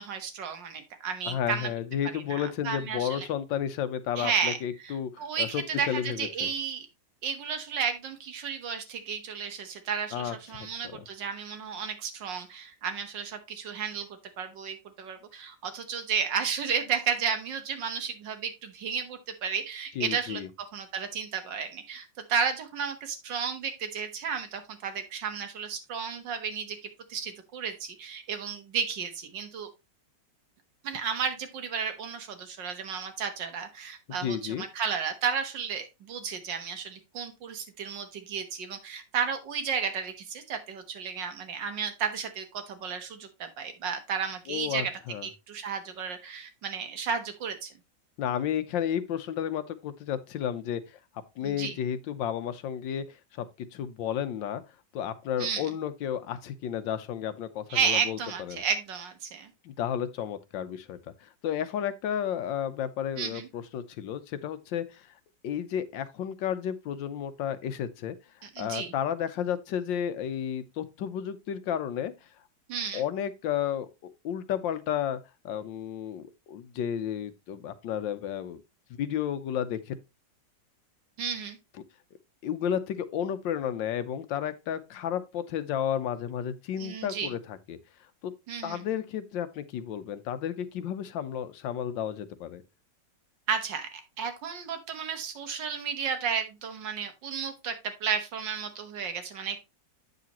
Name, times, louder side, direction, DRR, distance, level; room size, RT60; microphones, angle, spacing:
voice 1, 0.0-1.7 2.1-3.3 4.2-4.6 4.8-6.9 7.2-14.1 14.4-20.4 20.7-26.8 27.1-29.7 30.8-44.9 45.2-47.7 51.4-51.7 55.4-55.7 57.7-59.5 63.2-63.5 68.4-68.9 72.7-73.0 81.2-81.6 86.8-87.3 88.5-88.8 93.5-99.6, right 6 dB, 75° right, 1.9 m, -33 dB
voice 2, 1.2-6.5 10.1-11.0 19.9-20.5 34.2-34.6 44.5-45.3 48.2-50.8 51.4-53.5 53.7-54.6 54.9-58.6 59.6-65.1 65.4-68.1 68.4-72.1 72.9-75.2 75.4-78.6 79.0-79.9 82.4-87.8 88.2-88.3 88.6-92.6, left 9 dB, 85° left, 1.5 m, -32 dB
8.5 x 6.6 x 2.9 m
omnidirectional pair, 2.0 m